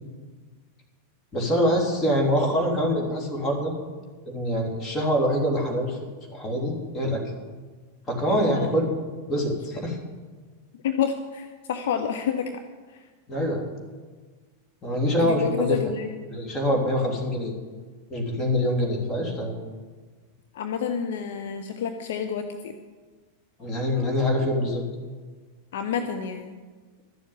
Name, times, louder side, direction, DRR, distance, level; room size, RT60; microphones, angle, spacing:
voice 1, 1.3-3.7 4.2-6.0 6.3-7.2 8.1-8.9 9.3-10.0 13.3-13.7 14.8-15.8 16.3-17.5 18.1-19.6 23.6-24.8, equal, 20° left, 1 dB, 3.3 m, -24 dB
voice 2, 10.8-12.6 12.9-13.0 15.2-16.1 20.5-22.7 25.7-26.5, left 7 dB, 55° left, 6 dB, 0.8 m, -29 dB
12.5 x 7.3 x 8.7 m, 1.4 s
figure-of-eight pair, 90°, 0 cm